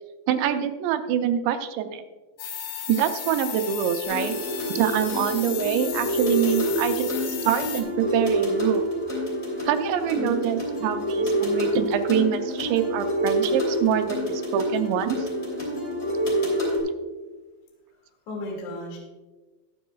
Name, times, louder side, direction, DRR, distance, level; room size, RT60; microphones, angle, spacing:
voice 1, 0.3-2.0 2.9-4.4 4.8-7.1 7.4-8.8 9.7-15.2, right 9 dB, 85° right, 7 dB, 3.0 m, -25 dB
sound 1, 2.4-7.8, left 9 dB, 80° left, 3.4 m, -35 dB
sound 2, 4.0-16.8, equal, 20° left, 2.4 m, -27 dB
voice 2, 18.3-19.0, equal, 50° left, -1 dB, 3.1 m, -34 dB
20.5 x 7.3 x 2.3 m, 1.2 s
omnidirectional pair, 5.1 m